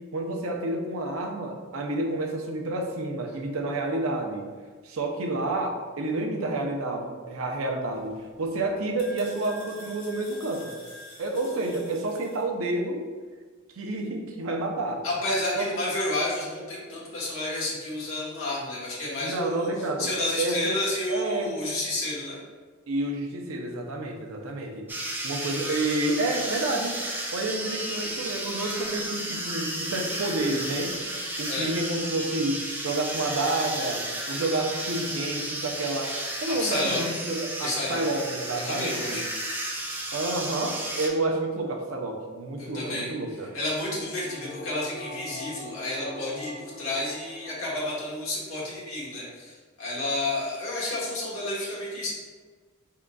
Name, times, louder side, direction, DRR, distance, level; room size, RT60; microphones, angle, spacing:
voice 1, 0.0-4.5 4.8-10.7 11.2-13.0 13.7-15.0 15.6-15.7 19.2-20.8 21.1-21.6 22.9-24.9 25.2-27.0 27.3-30.9 31.4-36.1 36.4-39.3 40.1-43.5, right 2 dB, 80° right, 2 dB, 0.6 m, -29 dB
sound 1, 7.9-12.4, left 1 dB, 60° left, 1.0 m, -47 dB
voice 2, 15.0-19.7 20.0-22.4 31.5-31.7 36.5-37.0 37.6-38.0 38.6-39.2 42.6-43.1 43.5-52.1, left 2 dB, 80° left, -6 dB, 1.1 m, -30 dB
sound 2, 24.9-41.1, right 1 dB, 10° right, 0.4 m, -33 dB
sound 3, 43.3-48.1 48.4-48.5, left 3 dB, 35° left, 1.2 m, -43 dB
3.7 x 3.6 x 2.2 m, 1.5 s
head